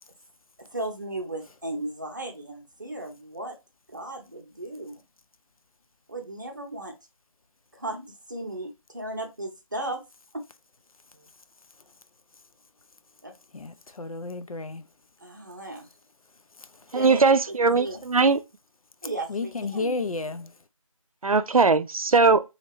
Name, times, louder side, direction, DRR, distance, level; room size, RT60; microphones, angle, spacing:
voice 1, 0.6-3.6 3.9-5.0 6.1-6.9 7.7-10.0 10.3-10.4 11.1-11.3 13.2-13.3 15.2-15.9 16.9-18.0 19.0-19.9, right 1 dB, 35° right, 0.7 m, -36 dB
voice 2, 13.5-14.8 19.3-20.5, left 3 dB, 85° left, 0.5 m, -32 dB
voice 3, 16.9-18.4 21.2-22.4, right 4 dB, 90° right, 0.4 m, -20 dB
2.8 x 2.6 x 2.9 m
figure-of-eight pair, 170°, 18 cm